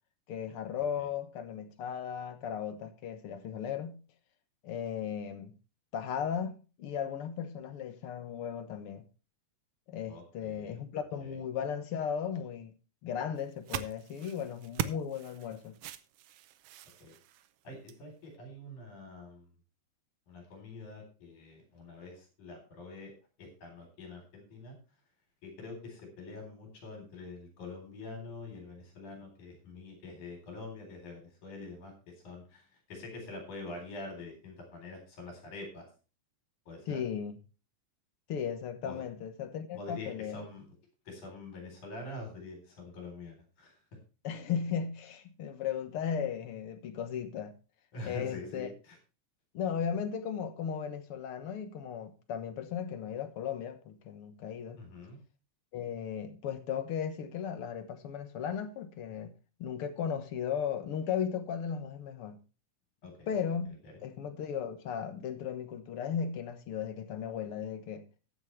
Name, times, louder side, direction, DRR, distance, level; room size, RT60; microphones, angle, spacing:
voice 1, 0.3-4.0 4.6-5.6 5.9-9.0 9.9-12.7 13.0-15.8 36.9-37.3 38.3-40.4 44.2-47.6 48.0-48.7 49.5-54.8 55.7-59.3 59.6-62.4 63.3-68.1, left 8 dB, 55° left, 1.7 m, -36 dB
voice 2, 10.1-10.8 11.2-11.4 17.0-17.2 17.6-19.5 20.3-23.1 23.4-24.8 25.4-35.9 36.7-37.0 38.8-39.0 39.7-40.8 41.0-44.0 47.9-49.0 54.8-55.2 63.0-63.3 63.6-64.0, left 2 dB, 75° left, 5.2 m, -45 dB
sound 1, 13.3-18.0, right 11 dB, 85° right, 1.3 m, -41 dB
14.0 x 9.6 x 3.2 m
omnidirectional pair, 3.6 m